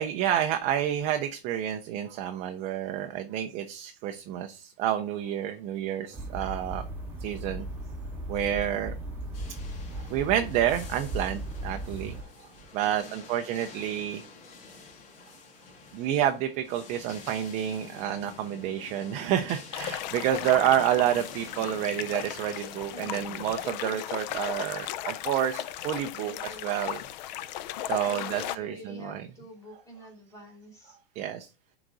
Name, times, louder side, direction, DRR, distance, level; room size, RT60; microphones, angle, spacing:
voice 1, 0.0-6.8 7.2-7.7 8.3-8.9 9.9-12.2 12.7-14.2 15.9-27.0 27.9-29.3 31.2-31.5, right 11 dB, 25° right, 6 dB, 0.4 m, -29 dB
sound 1, 6.1-12.2, right 1 dB, 5° right, 2.1 m, -37 dB
sound 2, 9.3-23.7, left 4 dB, 65° left, 2.2 m, -48 dB
voice 2, 12.4-13.3 20.3-20.4 22.9-23.4 26.1-26.7 27.3-27.4 28.0-31.0, equal, 10° left, -2 dB, 2.9 m, -47 dB
sound 3, 19.7-28.5, left 12 dB, 45° left, 0.5 m, -36 dB
10.5 x 3.9 x 3.8 m, 0.33 s
supercardioid pair, 155°, 31 cm